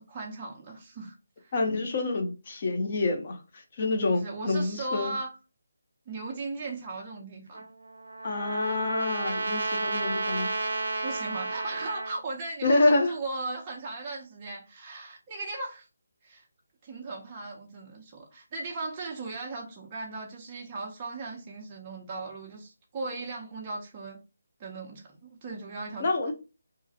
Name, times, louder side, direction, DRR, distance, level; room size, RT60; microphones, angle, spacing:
voice 1, 0.0-1.5 4.1-5.3 6.1-7.6 11.0-15.9 16.2-16.4 16.8-24.2 24.6-26.1, right 3 dB, 20° right, 0.4 m, -37 dB
voice 2, 1.5-5.2 8.2-10.5 12.6-13.1 26.0-26.3, left 2 dB, 35° left, 0.6 m, -27 dB
Trumpet, 7.5-12.2, right 3 dB, 85° right, 0.4 m, -32 dB
2.3 x 2.0 x 2.6 m
hypercardioid pair, 170°, 0 cm